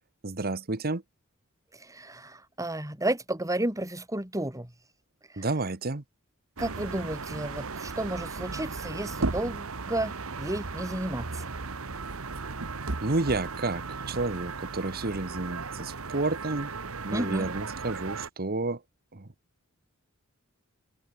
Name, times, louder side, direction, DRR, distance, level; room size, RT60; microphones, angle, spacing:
voice 1, 0.2-1.0 5.4-6.0 13.0-16.7 17.0-18.8 19.1-19.3, right 2 dB, 45° right, 1.4 m, -30 dB
voice 2, 1.7-4.7 5.3-5.5 6.6-11.5 17.1-17.5, right 1 dB, 15° right, 3.7 m, -32 dB
sound 1, 6.6-18.3, right 4 dB, 70° right, 1.4 m, -36 dB
open air
head